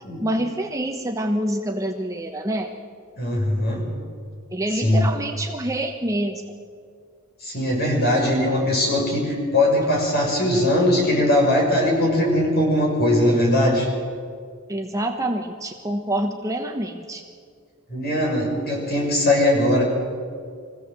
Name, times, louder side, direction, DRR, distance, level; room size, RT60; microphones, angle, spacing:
voice 1, 0.2-2.7 4.5-6.6 14.7-17.2, right 1 dB, 15° right, 3 dB, 1.1 m, -26 dB
voice 2, 3.2-3.9 4.7-5.1 7.4-13.9 17.9-19.8, left 1 dB, 50° left, -1 dB, 6.6 m, -20 dB
24.0 x 16.0 x 7.6 m, 2.1 s
head